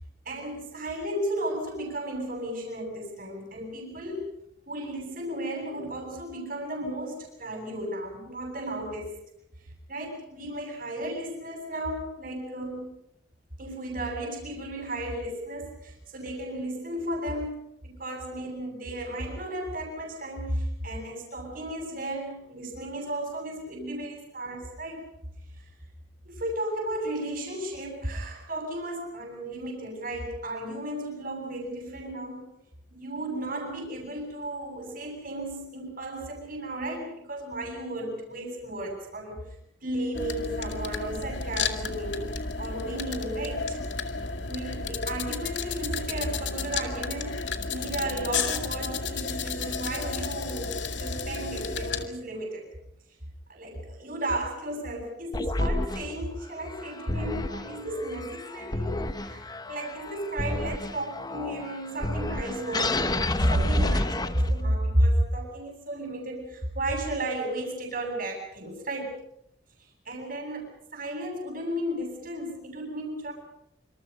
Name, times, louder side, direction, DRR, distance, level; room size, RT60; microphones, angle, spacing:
voice 1, 0.2-4.3 4.7-9.2 9.9-13.0 13.6-25.0 26.2-32.5 32.9-39.4 39.8-43.8 44.4-52.7 53.5-69.1 69.8-73.3, right 1 dB, 50° right, -1 dB, 7.5 m, -33 dB
sound 1, 40.1-52.1, left 4 dB, 70° left, 2.2 m, -32 dB
sound 2, 55.3-64.8, left 2 dB, 20° left, 0.9 m, -31 dB
27.0 x 26.5 x 5.4 m, 0.80 s
head